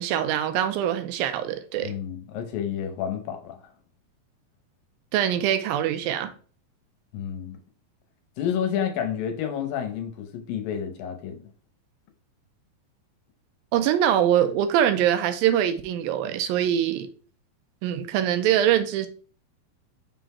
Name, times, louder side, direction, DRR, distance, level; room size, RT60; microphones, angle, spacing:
voice 1, 0.0-1.9 5.1-6.3 13.7-17.1 17.8-19.1, right 10 dB, 80° right, 2.3 m, -23 dB
voice 2, 1.8-3.6 7.1-7.6 8.4-11.4, left 8 dB, 75° left, 2.4 m, -30 dB
5.9 x 3.9 x 4.2 m
omnidirectional pair, 4.4 m